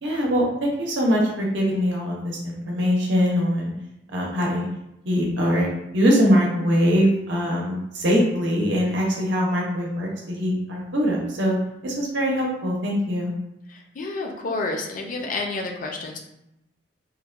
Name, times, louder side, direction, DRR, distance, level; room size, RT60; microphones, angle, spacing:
voice 1, 0.0-3.7 4.1-4.7 5.1-11.6 11.8-13.3, equal, 90° right, -2 dB, 0.6 m, -22 dB
voice 2, 13.7-16.2, left 3 dB, 50° left, 2 dB, 0.4 m, -30 dB
2.8 x 2.1 x 2.3 m, 0.85 s
head